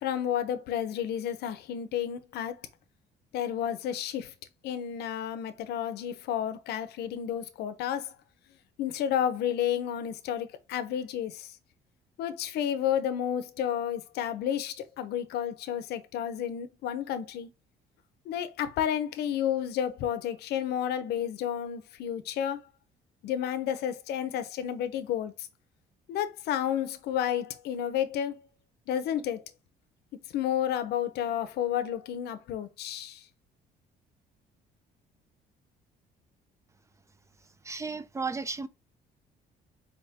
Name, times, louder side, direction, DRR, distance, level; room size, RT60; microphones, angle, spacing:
voice 1, 0.0-2.6 3.3-4.3 4.6-8.1 8.8-11.5 12.2-17.5 18.3-22.6 23.2-25.3 26.1-28.4 28.9-29.4 30.3-33.2, left 10 dB, 75° left, 0.7 m, -31 dB
voice 2, 37.6-38.7, right 4 dB, 15° right, 0.5 m, -34 dB
4.3 x 3.5 x 2.8 m
cardioid pair, 110°, 17 cm